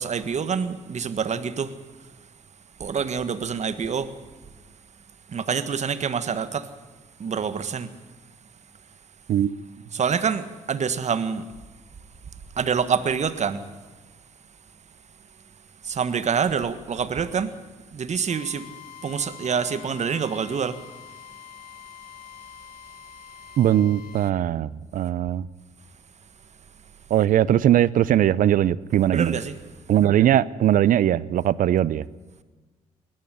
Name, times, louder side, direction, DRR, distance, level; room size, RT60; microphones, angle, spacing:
voice 1, 0.0-2.1 2.8-4.2 5.3-6.7 7.2-7.9 9.9-11.5 12.5-13.7 15.8-17.6 17.9-18.7 19.0-20.8 29.1-29.6, right 6 dB, 50° right, 1.6 m, -26 dB
Drill, 18.3-24.3, left 11 dB, 80° left, 1.3 m, -45 dB
voice 2, 23.6-25.5 27.1-29.3 29.9-32.0, right 11 dB, 70° right, 0.7 m, -20 dB
20.0 x 14.0 x 10.0 m
supercardioid pair, 60°, 15 cm